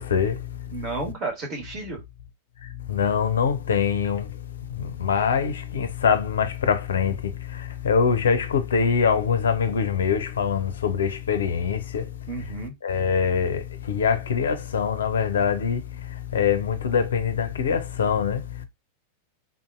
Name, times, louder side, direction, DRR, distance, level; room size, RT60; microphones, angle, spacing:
voice 1, 0.0-0.8 2.6-12.1 12.4-12.5 12.8-18.6, left 6 dB, 65° left, 0.4 m, -24 dB
voice 2, 0.7-2.0 12.3-12.7, right 3 dB, 35° right, 1.3 m, -32 dB
3.6 x 2.6 x 2.4 m
figure-of-eight pair, 90°, 0 cm